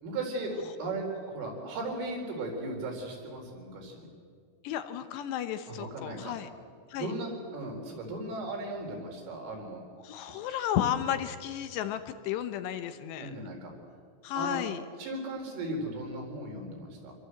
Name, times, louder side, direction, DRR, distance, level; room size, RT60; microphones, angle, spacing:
voice 1, 0.0-4.1 5.7-6.3 7.0-9.9 10.3-10.4 10.8-10.9 13.2-13.7 14.4-14.6 15.0-17.1, right 2 dB, 75° right, 1 dB, 6.9 m, -37 dB
voice 2, 4.6-6.5 6.9-7.1 10.0-13.3 14.2-14.8, left 10 dB, 75° left, 10 dB, 2.6 m, -33 dB
26.5 x 22.5 x 7.9 m, 2.1 s
omnidirectional pair, 5.9 m